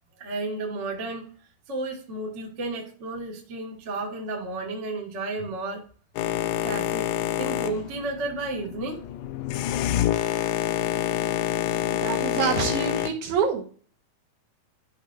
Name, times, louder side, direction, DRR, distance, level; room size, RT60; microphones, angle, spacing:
voice 1, 0.2-1.3 1.7-5.8 6.6-7.1 7.4-9.0, right 2 dB, 40° right, 0 dB, 1.0 m, -32 dB
Boat Water vehicle, 6.2-13.1, left 12 dB, 80° left, 2.2 m, -27 dB
voice 2, 11.9-13.6, right 6 dB, 65° right, 1 dB, 2.4 m, -26 dB
12.0 x 5.5 x 2.5 m, 0.43 s
omnidirectional pair, 4.3 m